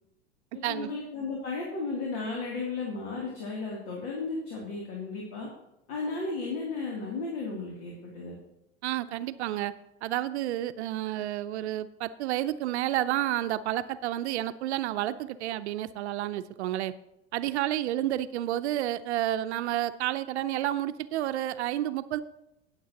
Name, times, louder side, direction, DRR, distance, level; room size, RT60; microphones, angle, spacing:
voice 1, 0.5-5.5 5.9-8.4, left 3 dB, 65° left, -2 dB, 2.8 m, -34 dB
voice 2, 8.8-9.7 10.0-16.9 17.3-22.2, right 13 dB, 75° right, 13 dB, 0.6 m, -30 dB
18.5 x 7.4 x 2.9 m, 0.86 s
hypercardioid pair, 85°, 34 cm